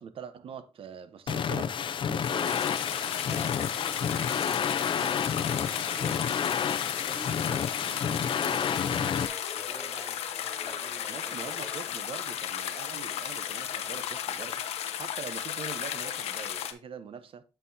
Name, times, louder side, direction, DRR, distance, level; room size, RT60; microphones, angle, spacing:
voice 1, 0.0-2.6 7.5-7.6 11.1-14.6 14.9-17.4, right 6 dB, 60° right, 0.8 m, -43 dB
sound 1, 1.3-9.3, left 7 dB, 55° left, 0.5 m, -30 dB
sound 2, 2.1-16.7, left 10 dB, 85° left, 0.7 m, -35 dB
voice 2, 3.2-5.3 5.5-6.3 6.8-8.6 9.5-11.7, equal, ahead, 1.7 m, -48 dB
sound 3, 8.4-11.9 13.3-13.4, right 2 dB, 20° right, 3.1 m, -49 dB
8.2 x 5.7 x 2.7 m
cardioid pair, 90°, 10 cm